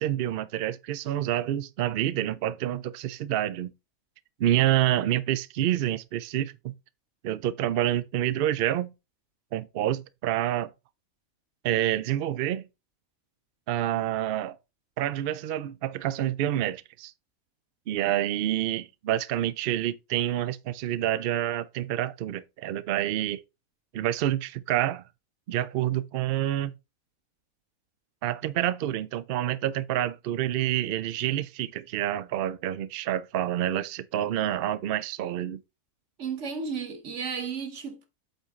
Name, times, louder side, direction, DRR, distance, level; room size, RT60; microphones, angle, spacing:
voice 1, 0.0-3.7 4.4-6.7 7.2-8.9 9.5-10.7 11.6-12.7 13.7-14.6 15.0-17.1 17.9-23.4 23.9-25.0 25.5-26.7 28.2-35.6, right 12 dB, 75° right, 0.5 m, -28 dB
voice 2, 36.2-38.1, right 6 dB, 55° right, 1.5 m, -33 dB
8.1 x 4.1 x 3.6 m
omnidirectional pair, 1.5 m